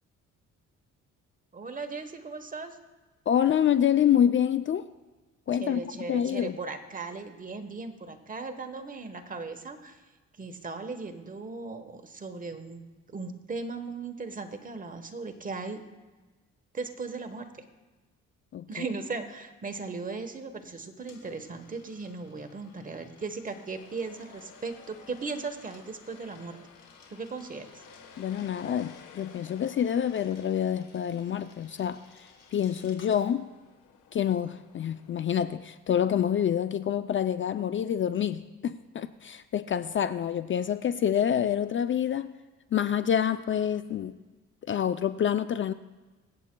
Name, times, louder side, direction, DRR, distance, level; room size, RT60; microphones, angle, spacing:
voice 1, 1.5-2.8 5.6-10.0 10.4-12.8 13.1-15.8 16.7-17.6 18.7-26.6 27.1-27.8, right 4 dB, 25° right, 7 dB, 1.1 m, -37 dB
voice 2, 3.3-4.9 5.5-5.8 6.1-6.6 18.5-18.8 28.2-33.5 34.1-42.3 42.7-44.2 44.7-45.7, left 9 dB, 40° left, 11 dB, 0.4 m, -27 dB
Coin (dropping), 20.5-33.3, left 4 dB, 60° left, 3.0 m, -58 dB
sound 1, 23.4-35.3, left 7 dB, 80° left, 1.3 m, -55 dB
24.5 x 8.3 x 2.2 m, 1.2 s
cardioid pair, 90°, 30 cm